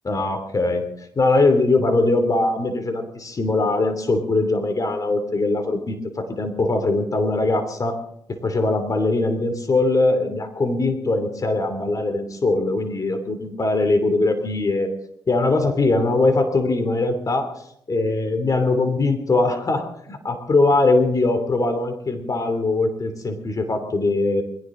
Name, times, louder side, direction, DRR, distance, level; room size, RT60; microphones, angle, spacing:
voice 1, 0.0-0.8 1.2-8.0 8.3-14.9 15.3-17.5 17.9-24.4, left 2 dB, 40° left, 7 dB, 2.9 m, -21 dB
21.5 x 16.5 x 3.8 m, 0.72 s
cardioid pair, 65°, 9 cm